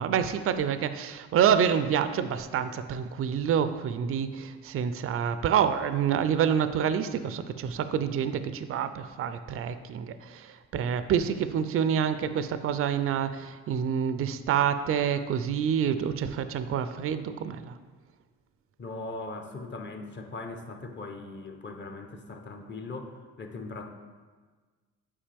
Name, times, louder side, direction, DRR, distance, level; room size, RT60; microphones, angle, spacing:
voice 1, 0.0-17.7, right 8 dB, 50° right, 11 dB, 0.4 m, -27 dB
voice 2, 18.8-23.9, left 3 dB, 40° left, 5 dB, 0.9 m, -39 dB
8.7 x 4.8 x 3.4 m, 1.4 s
cardioid pair, 90°, 30 cm